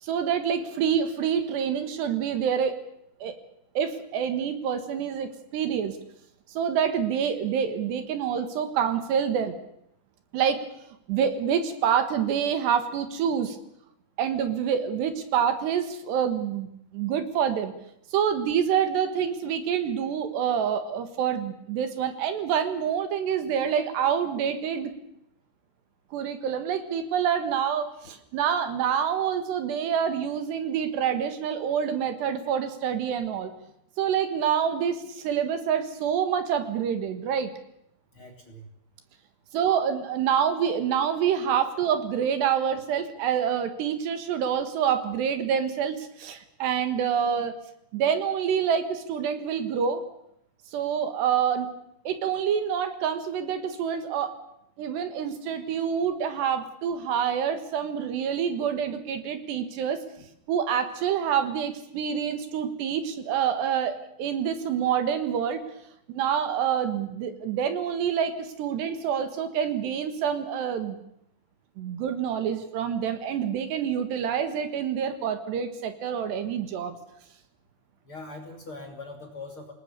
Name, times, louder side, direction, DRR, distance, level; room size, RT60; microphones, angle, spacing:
voice 1, 0.0-2.8 3.2-3.4 3.8-6.0 6.5-9.6 10.3-10.6 11.1-13.6 14.2-17.7 18.1-24.9 26.1-33.5 34.0-37.5 39.5-47.5 47.9-50.0 50.7-51.7 52.1-54.3 54.8-60.0 60.5-65.6 66.2-71.0 71.8-77.0, right 8 dB, 70° right, 10 dB, 3.6 m, -27 dB
voice 2, 38.1-38.7 60.2-60.3 78.0-79.7, left 2 dB, 35° left, 3 dB, 2.9 m, -42 dB
27.0 x 19.5 x 6.9 m, 0.78 s
omnidirectional pair, 5.4 m